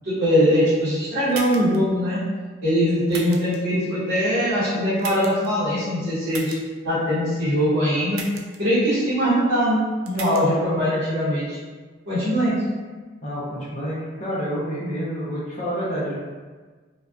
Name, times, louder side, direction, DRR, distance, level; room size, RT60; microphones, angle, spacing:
voice 1, 0.0-2.2 2.6-6.5 6.8-8.2 8.6-11.6 12.1-12.5, equal, 60° right, -14 dB, 0.8 m, -21 dB
sound 1, 1.3-1.8 3.1-3.6 5.0-5.5 6.3-6.6 8.1-8.6 10.1-10.4, right 5 dB, 90° right, 0.3 m, -35 dB
voice 2, 10.2-10.7 13.2-16.1, equal, 35° left, -7 dB, 0.5 m, -28 dB
2.4 x 2.1 x 2.3 m, 1.4 s
head